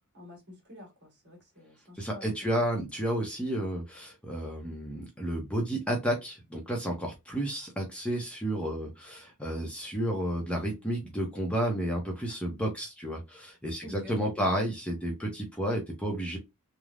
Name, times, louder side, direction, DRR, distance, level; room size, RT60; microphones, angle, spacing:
voice 1, 0.1-2.7 13.8-14.5, left 1 dB, 50° right, 1.6 m, -49 dB
voice 2, 1.9-16.4, right 1 dB, 5° left, 0.6 m, -31 dB
3.2 x 2.0 x 2.3 m
head